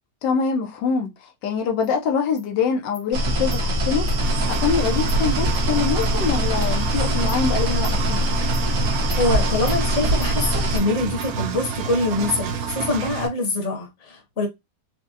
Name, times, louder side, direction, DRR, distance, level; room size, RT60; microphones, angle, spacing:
voice 1, 0.2-4.1 4.5-8.2, left 6 dB, 85° left, 1.3 m, -24 dB
Insect, 1.8-1.9 2.4-2.5 2.9-3.1 3.5-3.6 4.1-4.2 4.5-4.6 5.1-5.2 5.5-5.6 6.0-6.1 6.6-6.7 7.3-7.4 7.8-8.0 8.5-8.7 9.1-9.2 9.7-9.8 10.2-10.3 10.8-10.9 11.2-11.3, left 3 dB, 70° left, 1.7 m, -41 dB
sound 1, 3.1-10.8, equal, 85° right, 1.6 m, -23 dB
Engine, 4.2-13.3, right 6 dB, 70° right, 1.0 m, -29 dB
voice 2, 9.2-14.5, left 2 dB, 45° left, 1.4 m, -24 dB
4.8 x 2.1 x 2.7 m
omnidirectional pair, 1.8 m